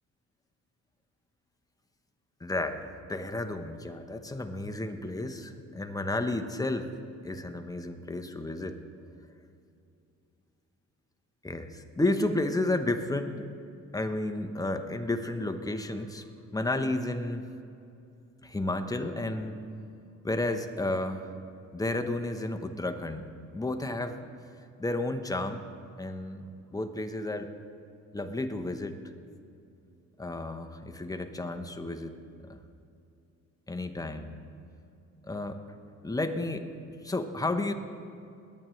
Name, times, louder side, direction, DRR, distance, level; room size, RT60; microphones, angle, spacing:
voice 1, 2.4-6.9 7.2-8.8 11.4-13.5 13.9-16.3 16.5-17.4 18.4-19.6 20.2-21.3 21.7-24.2 24.8-25.6 26.0-27.5 28.1-29.0 30.2-32.2 32.4-32.6 33.7-34.4 35.2-35.6 36.0-37.7, left 2 dB, 10° left, 7 dB, 0.9 m, -32 dB
20.5 x 8.9 x 3.2 m, 2.6 s
cardioid pair, 90°, 30 cm